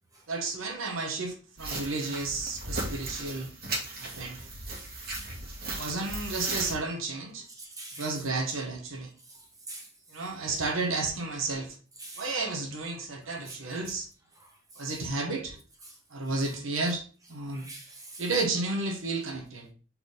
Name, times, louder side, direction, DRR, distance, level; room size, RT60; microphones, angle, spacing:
voice 1, 0.3-3.5 4.0-4.5 5.7-7.5 8.0-9.1 10.1-11.7 12.2-14.1 14.8-15.6 16.1-17.0 17.3-17.7 18.2-19.7, right 3 dB, 85° right, 1.4 m, -32 dB
sound 1, 1.6-6.7, right 2 dB, 50° right, 2.2 m, -36 dB
voice 2, 4.7-5.3 7.6-8.1 9.3-9.4 9.7-9.9 12.0-12.3 13.5-13.6 17.5-18.3, right 2 dB, 20° right, 1.7 m, -44 dB
4.4 x 4.3 x 5.3 m
head